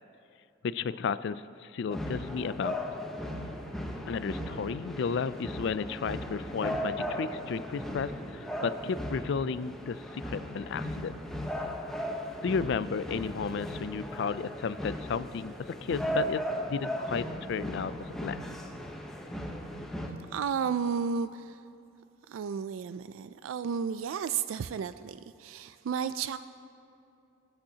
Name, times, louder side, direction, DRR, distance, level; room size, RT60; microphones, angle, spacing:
voice 1, 0.6-1.4 1.7-2.7 4.1-11.1 12.4-15.5 15.8-16.4 16.7-17.9 18.2-18.4, left 5 dB, 60° left, 15 dB, 0.4 m, -33 dB
sound 1, 1.9-20.1, equal, ahead, 0.9 m, -37 dB
voice 2, 20.3-21.6 22.3-26.4, right 6 dB, 85° right, 12 dB, 0.3 m, -33 dB
24.5 x 8.9 x 2.8 m, 2.7 s
head